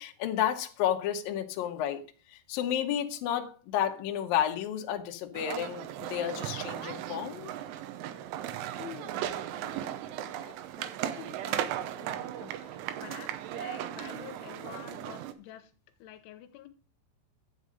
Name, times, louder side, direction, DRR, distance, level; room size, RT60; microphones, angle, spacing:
voice 1, 0.0-2.0 2.3-7.5, left 10 dB, 70° left, 2.3 m, -31 dB
sound 1, 5.3-15.3, right 11 dB, 90° right, 3.3 m, -37 dB
voice 2, 8.8-15.7 16.0-16.7, left 12 dB, 85° left, 3.1 m, -49 dB
12.0 x 8.1 x 5.2 m
omnidirectional pair, 5.7 m